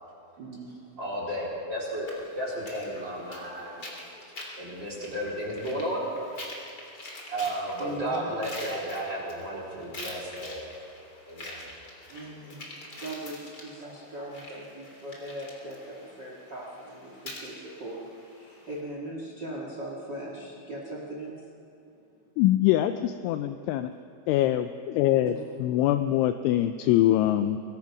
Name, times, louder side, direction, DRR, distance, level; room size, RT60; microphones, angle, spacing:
voice 1, 0.4-0.8 7.4-7.5 7.8-8.3 12.1-21.5 23.9-24.0 25.2-25.4, right 1 dB, 60° right, -2 dB, 1.0 m, -40 dB
voice 2, 1.0-2.1 2.3-3.8 4.6-6.0 7.3-10.7 11.3-11.7, right 1 dB, 25° right, -4 dB, 4.4 m, -33 dB
sound 1, 2.1-18.8, left 1 dB, 25° left, 2.9 m, -45 dB
voice 3, 22.4-23.9 24.3-27.6, left 13 dB, 85° left, 9 dB, 2.8 m, -24 dB
24.5 x 20.0 x 6.0 m, 2.6 s
omnidirectional pair, 6.0 m